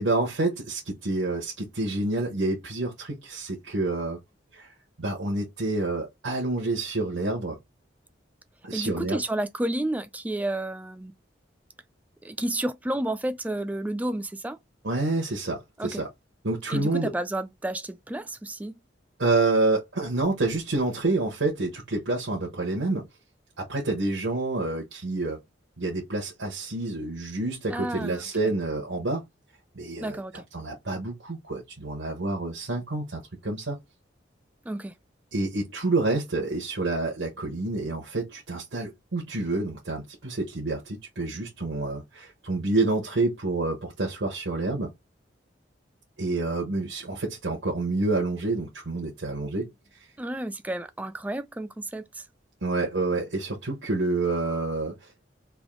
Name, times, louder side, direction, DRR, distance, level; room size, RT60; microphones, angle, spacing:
voice 1, 0.0-4.2 4.5-4.7 5.0-7.6 8.6-9.2 14.8-16.1 16.4-17.1 19.2-23.1 23.6-25.4 25.8-29.2 29.8-30.2 30.5-33.8 35.3-44.9 46.2-49.7 52.6-54.9, right 2 dB, 85° right, 1.0 m, -28 dB
voice 2, 8.7-11.1 12.2-14.6 15.8-16.0 16.7-18.7 27.7-28.5 30.0-30.4 34.7-35.0 50.2-52.3, right 1 dB, 10° right, 0.3 m, -31 dB
3.5 x 2.6 x 3.7 m
head